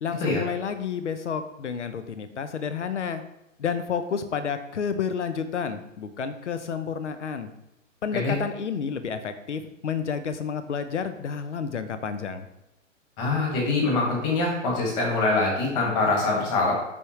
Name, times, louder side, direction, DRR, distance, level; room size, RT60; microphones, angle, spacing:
voice 1, 0.0-3.2 3.6-7.5 8.0-12.5, left 6 dB, 60° left, 10 dB, 0.7 m, -30 dB
voice 2, 13.2-16.7, left 3 dB, 25° left, -1 dB, 1.9 m, -24 dB
9.5 x 3.6 x 3.2 m, 0.90 s
figure-of-eight pair, 125°, 39 cm